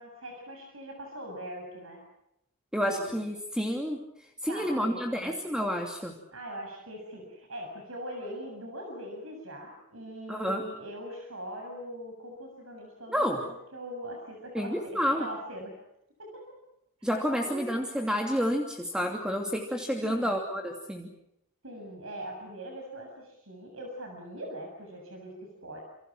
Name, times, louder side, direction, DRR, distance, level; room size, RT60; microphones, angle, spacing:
voice 1, 0.0-2.0 2.9-3.2 4.5-5.4 6.3-15.7 16.2-16.4 17.0-17.6 17.9-18.1 20.0-20.3 21.6-25.8, right 1 dB, 70° right, 2 dB, 7.4 m, -42 dB
voice 2, 2.7-6.1 10.3-10.7 13.1-13.4 14.5-15.3 17.0-21.1, equal, 5° right, 2 dB, 2.8 m, -30 dB
29.0 x 28.5 x 6.2 m, 0.85 s
head